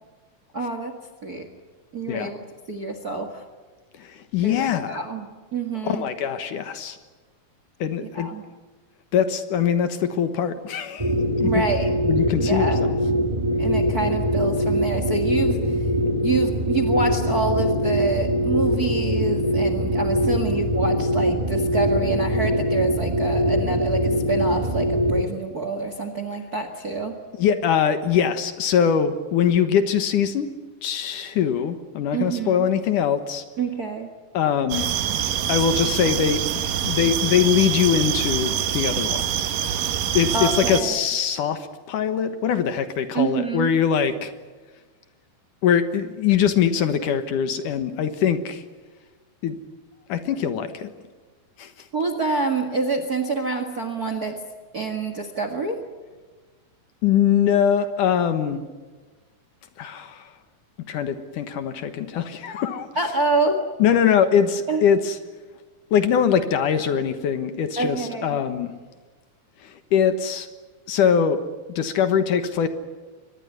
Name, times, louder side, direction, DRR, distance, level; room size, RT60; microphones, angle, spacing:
voice 1, 0.5-0.9 1.2-1.5 1.9-2.4 2.7-3.4 4.4-5.3 5.5-6.1 8.1-8.4 11.4-11.9 12.4-12.8 13.6-15.6 16.2-27.1 32.1-32.7 33.6-34.1 40.3-41.0 43.1-43.7 51.9-54.4 54.7-55.8 62.9-63.6 64.7-64.8 67.8-68.4, right 3 dB, 35° right, 8 dB, 1.6 m, -27 dB
voice 2, 3.9-5.0 5.8-7.0 7.8-8.3 9.1-11.6 12.1-12.9 27.4-30.5 30.8-33.4 34.3-34.9 35.5-39.2 40.1-44.3 45.6-48.6 49.4-49.6 50.1-50.9 51.6-51.7 57.0-58.6 59.8-60.3 60.9-62.9 63.8-65.2 65.9-68.7 69.6-70.5 70.9-71.4 71.8-72.7, left 8 dB, 65° left, 10 dB, 2.6 m, -22 dB
sound 1, 11.0-25.2, equal, 10° right, 1.4 m, -22 dB
sound 2, 34.7-40.8, right 9 dB, 70° right, 2.9 m, -25 dB
24.0 x 20.0 x 9.6 m, 1.4 s
omnidirectional pair, 4.2 m